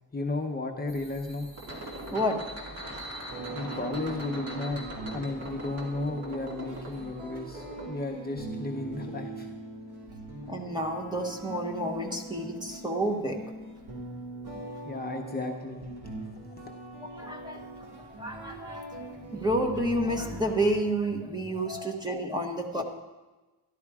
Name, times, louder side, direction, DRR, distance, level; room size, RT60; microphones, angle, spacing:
voice 1, 0.1-1.5 3.5-4.8 5.1-9.5 14.8-15.9 16.4-16.7 21.6-21.9, left 2 dB, 25° left, 2 dB, 0.9 m, -34 dB
sound 1, 0.9-7.9, right 1 dB, 40° right, 2.5 m, -41 dB
sound 2, 3.3-20.9, right 2 dB, 70° right, 3.1 m, -42 dB
voice 2, 10.5-13.4 17.1-17.6 18.2-22.8, right 1 dB, 10° right, 3 dB, 1.2 m, -30 dB
13.5 x 11.5 x 4.8 m, 1.2 s
wide cardioid pair, 160°, 40 cm